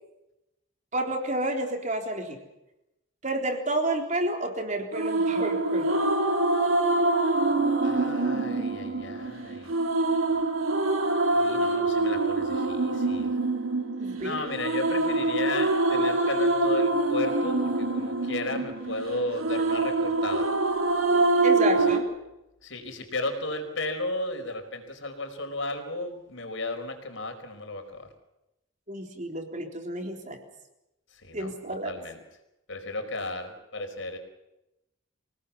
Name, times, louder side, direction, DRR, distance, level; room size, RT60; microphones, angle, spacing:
voice 1, 0.9-2.4 3.2-6.0 14.0-14.6 21.4-22.1 28.9-30.4 31.3-32.0, right 1 dB, 35° right, 3 dB, 3.7 m, -30 dB
sound 1, 4.9-22.0, right 2 dB, 80° right, 3.1 m, -25 dB
voice 2, 7.8-9.7 11.3-13.3 14.2-20.5 21.8-21.9 22.6-28.1 31.1-31.5 31.8-32.2 32.7-34.2, left 2 dB, 65° left, 6 dB, 4.8 m, -34 dB
26.5 x 18.5 x 7.2 m, 0.90 s
head